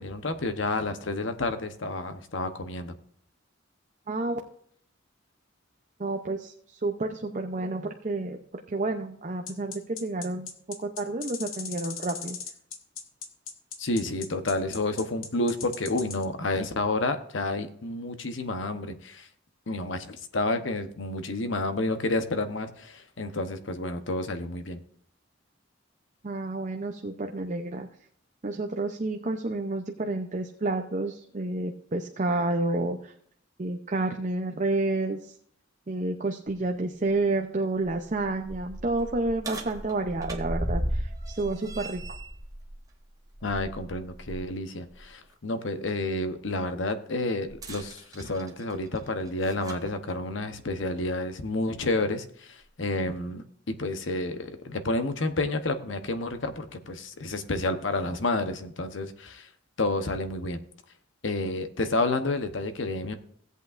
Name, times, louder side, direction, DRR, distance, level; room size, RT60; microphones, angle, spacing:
voice 1, 0.0-2.9 13.8-19.3 19.7-24.8 43.4-59.5 59.8-60.6 61.2-63.2, left 2 dB, 70° left, 8 dB, 1.0 m, -30 dB
voice 2, 4.1-4.4 6.0-10.5 10.8-12.4 26.2-27.9 28.4-33.1 33.6-35.4 35.9-42.2, right 2 dB, 40° right, 4 dB, 0.6 m, -30 dB
sound 1, 9.5-16.2, left 6 dB, 85° left, 1.2 m, -38 dB
sound 2, 37.8-44.5 44.9-45.0 47.5-49.9 50.9-51.0 51.8-51.9, right 1 dB, 20° right, 1.1 m, -36 dB
16.5 x 8.2 x 2.5 m, 0.64 s
head